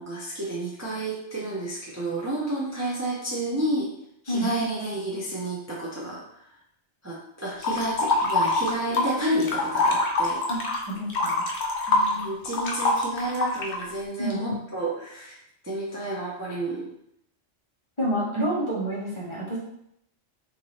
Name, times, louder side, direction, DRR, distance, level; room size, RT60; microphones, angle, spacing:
voice 1, 0.0-3.9 4.2-6.2 7.0-10.4 11.9-15.4 15.6-16.9, right 1 dB, 20° right, -6 dB, 0.5 m, -30 dB
sound 1, 7.6-9.1 9.4-13.8, left 3 dB, 65° left, 0.9 m, -24 dB
voice 2, 10.9-11.4 14.2-14.5 18.0-19.6, equal, 30° left, -6 dB, 0.8 m, -28 dB
3.8 x 2.7 x 3.1 m, 0.75 s
omnidirectional pair, 1.2 m